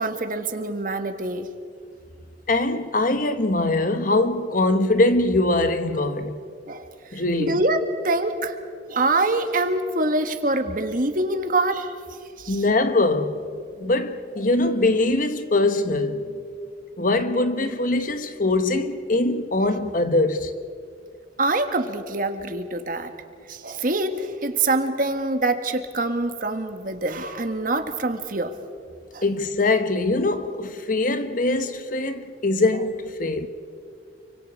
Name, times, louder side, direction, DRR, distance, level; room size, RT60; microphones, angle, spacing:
voice 1, 0.0-1.5 6.7-8.6 8.9-11.9 12.4-12.6 21.4-23.1 23.5-28.6 29.1-29.2, right 2 dB, 50° right, 1.6 m, -25 dB
voice 2, 2.5-6.4 7.1-7.6 12.5-13.4 13.8-16.4 17.0-20.6 29.2-33.5, left 2 dB, 45° left, 1.2 m, -22 dB
29.5 x 24.5 x 4.8 m
head